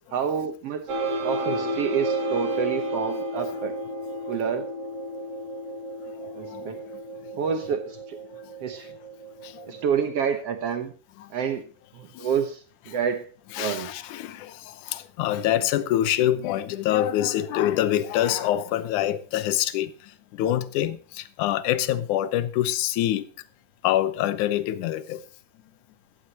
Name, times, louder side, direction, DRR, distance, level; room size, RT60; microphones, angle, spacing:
voice 1, 0.1-0.8 1.2-3.7 4.3-4.7 6.3-6.8 7.4-8.2 8.6-8.9 9.7-10.9 11.3-11.6 11.9-13.3 13.6-13.9, right 7 dB, 80° right, 1.3 m, -28 dB
sound 1, 0.9-10.1, right 1 dB, 55° right, 3.2 m, -32 dB
voice 2, 13.5-19.9 20.3-23.2 23.8-25.2, left 12 dB, 70° left, 2.0 m, -25 dB
16.0 x 14.0 x 2.9 m
omnidirectional pair, 4.3 m